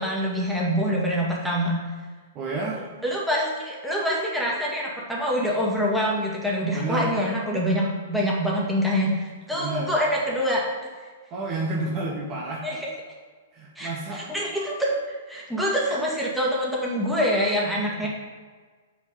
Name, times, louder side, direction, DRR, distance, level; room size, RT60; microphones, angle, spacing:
voice 1, 0.0-1.7 3.0-10.6 12.6-12.9 13.8-14.9 15.3-18.1, equal, ahead, -5 dB, 2.0 m, -25 dB
voice 2, 2.3-2.8 6.7-7.1 9.5-9.9 11.3-12.8 13.5-14.3, right 2 dB, 30° right, -2 dB, 1.3 m, -30 dB
8.4 x 4.7 x 5.5 m, 1.5 s
figure-of-eight pair, 105°, 0 cm